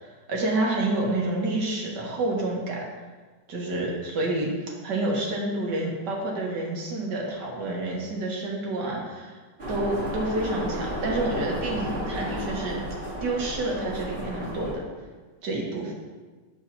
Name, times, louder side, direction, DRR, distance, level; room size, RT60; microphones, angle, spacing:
voice 1, 0.3-2.9 3.5-9.4 9.7-12.8 13.2-14.8 15.4-15.9, right 2 dB, 75° right, -2 dB, 1.9 m, -28 dB
sound 1, 9.6-14.7, equal, 40° right, 1.6 m, -33 dB
10.0 x 4.7 x 2.8 m, 1.4 s
omnidirectional pair, 1.9 m